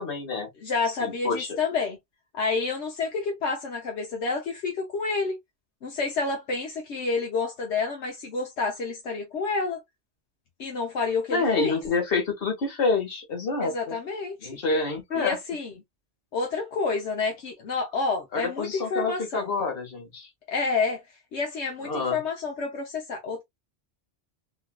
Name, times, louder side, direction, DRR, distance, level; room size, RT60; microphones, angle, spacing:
voice 1, 0.0-0.5 1.0-1.6 11.3-14.0 14.4-15.4 18.3-20.3 21.8-22.2, left 3 dB, 55° left, 1.4 m, -27 dB
voice 2, 0.6-2.0 2.3-5.4 5.8-9.8 10.6-11.8 13.6-14.6 15.2-15.7 16.3-19.5 20.5-21.0 21.3-23.4, left 4 dB, 80° left, 1.1 m, -29 dB
3.7 x 2.4 x 2.2 m
omnidirectional pair, 1.2 m